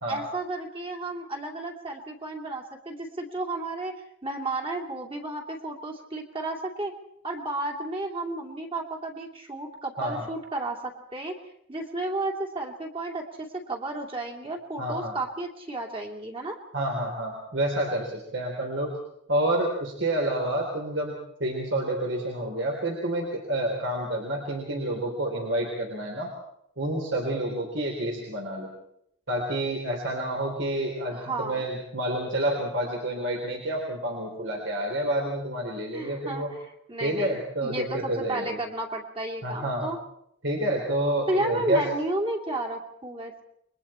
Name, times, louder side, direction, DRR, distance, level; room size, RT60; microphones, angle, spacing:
voice 1, 0.1-3.9 4.2-6.9 7.2-11.3 11.7-16.6 31.1-31.6 35.9-36.6 36.9-40.0 41.3-43.4, right 2 dB, 25° right, 2 dB, 2.6 m, -32 dB
voice 2, 14.8-15.2 16.7-18.9 19.3-26.3 26.8-28.7 29.3-36.5 37.0-38.6 39.4-39.9 40.4-41.8, right 1 dB, 60° right, 0 dB, 3.8 m, -29 dB
29.0 x 22.5 x 4.4 m, 0.75 s
head